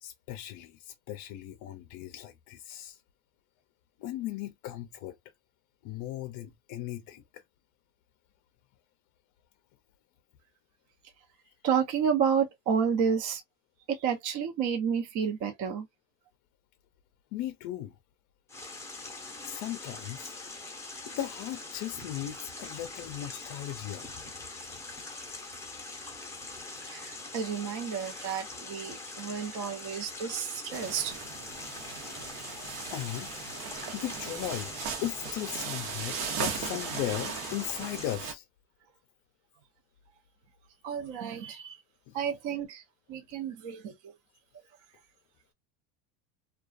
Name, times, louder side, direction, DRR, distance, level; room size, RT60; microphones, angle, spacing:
voice 1, 0.0-3.0 4.0-5.2 5.8-7.4 11.5-11.6 17.3-18.0 19.4-20.3 21.1-24.1 32.9-33.3 33.9-34.7 35.0-38.4 42.1-42.2, left 13 dB, 50° left, 0.4 m, -37 dB
voice 2, 11.6-13.4 13.9-15.9 26.9-31.1 40.8-41.8 42.1-42.8 43.1-44.1, right 7 dB, 45° right, 0.7 m, -30 dB
sound 1, 18.5-38.2, left 3 dB, 5° left, 0.6 m, -43 dB
sound 2, 30.7-38.3, right 7 dB, 80° right, 1.0 m, -38 dB
2.3 x 2.3 x 2.4 m
supercardioid pair, 140°, 41 cm